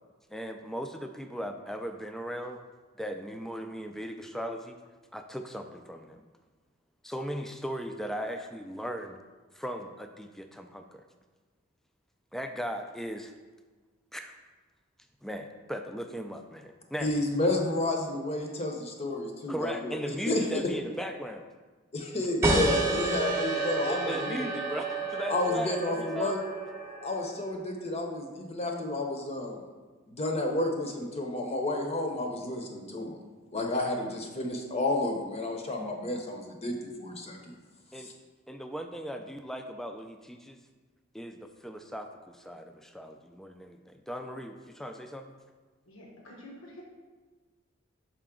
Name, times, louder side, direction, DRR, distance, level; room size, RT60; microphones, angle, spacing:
voice 1, 0.3-2.6 3.0-4.8 5.1-6.2 7.0-9.2 9.5-11.0 12.3-13.3 14.1-14.3 15.2-17.5 19.5-21.5 23.9-26.4 37.9-38.1 38.5-40.6 41.1-45.3, equal, ahead, 6 dB, 0.3 m, -38 dB
voice 2, 17.0-20.0 20.3-20.6 21.9-24.5 25.3-26.4 27.0-29.6 30.1-33.2 33.5-37.4 38.0-38.1, left 2 dB, 30° left, 1 dB, 0.7 m, -31 dB
sound 1, 22.4-27.6, right 2 dB, 15° right, 0.8 m, -30 dB
voice 3, 45.9-46.8, left 1 dB, 90° left, -1 dB, 1.1 m, -48 dB
5.7 x 5.0 x 3.7 m, 1.3 s
head